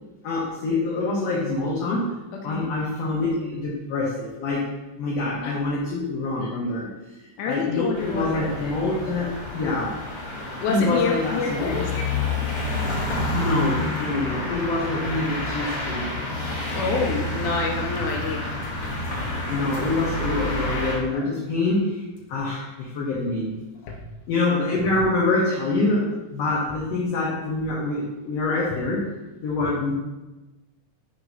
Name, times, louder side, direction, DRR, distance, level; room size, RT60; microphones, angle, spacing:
voice 1, 0.2-2.1 2.4-4.7 5.0-6.9 7.5-10.0 10.7-12.0 13.3-16.2 19.5-22.0 22.3-23.6 24.3-29.1 29.4-29.9, left 2 dB, 65° left, -5 dB, 1.9 m, -25 dB
voice 2, 7.4-8.8 10.6-11.8 16.7-18.5 23.8-24.0, left 4 dB, 85° left, 1 dB, 2.1 m, -27 dB
sound 1, 7.9-21.0, left 2 dB, 40° left, 1.9 m, -29 dB
5.1 x 3.6 x 5.6 m, 1.0 s
omnidirectional pair, 3.4 m